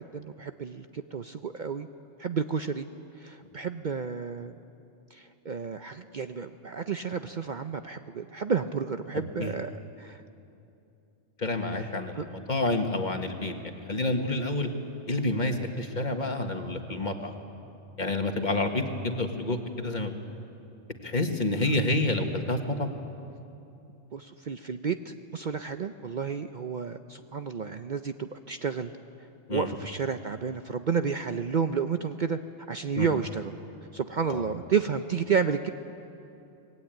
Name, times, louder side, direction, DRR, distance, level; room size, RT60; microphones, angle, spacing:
voice 1, 0.1-1.9 2.2-2.9 3.2-4.5 5.1-9.7 10.0-10.2 11.7-12.3 24.1-28.9 29.5-32.4 32.7-33.6 33.9-35.7, right 6 dB, 50° right, 8 dB, 0.7 m, -31 dB
voice 2, 11.4-14.7 15.1-17.3 18.0-20.1 21.0-22.9 29.5-29.7 33.0-33.1 34.3-34.4, left 2 dB, 40° left, 4 dB, 1.8 m, -29 dB
25.0 x 20.0 x 9.2 m, 2.8 s
omnidirectional pair, 1.2 m